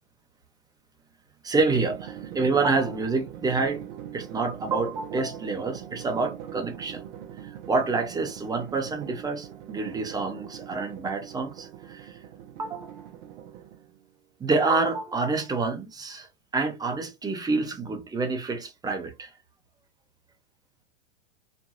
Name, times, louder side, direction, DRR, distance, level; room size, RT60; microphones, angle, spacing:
voice 1, 1.4-3.8 4.1-7.0 7.4-12.2 12.6-13.1 14.4-16.3 16.5-19.3, right 3 dB, 10° right, 0.6 m, -27 dB
Drum, 1.7-14.0, right 10 dB, 45° right, 0.7 m, -42 dB
2.9 x 2.6 x 2.5 m
hypercardioid pair, 120°, 36 cm